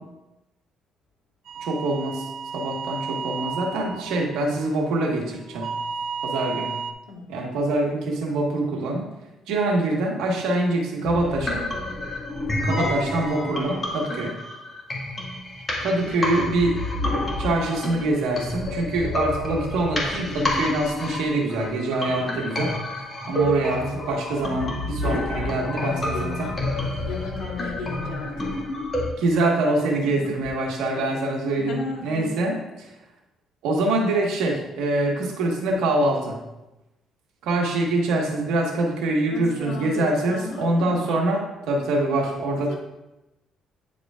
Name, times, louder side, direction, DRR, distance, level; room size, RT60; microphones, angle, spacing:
sound 1, 1.5-5.1 5.5-6.9, right 5 dB, 65° right, 0.4 m, -33 dB
voice 1, 1.6-5.7 6.2-6.8 7.3-9.1 9.5-11.7 12.6-14.3 15.8-16.8 17.4-22.8 23.3-26.5 29.2-32.5 33.6-36.4 37.4-42.7, right 2 dB, 85° right, 0 dB, 1.4 m, -24 dB
voice 2, 7.1-7.4 23.2-23.5 25.0-26.6 27.0-30.4 30.9-31.2 31.6-32.5 39.3-41.3 42.5-42.7, left 3 dB, 85° left, -2 dB, 1.6 m, -37 dB
sound 2, 11.0-29.0, left 1 dB, 25° left, 1.7 m, -29 dB
9.4 x 4.9 x 2.4 m, 0.99 s
cardioid pair, 100°, 0 cm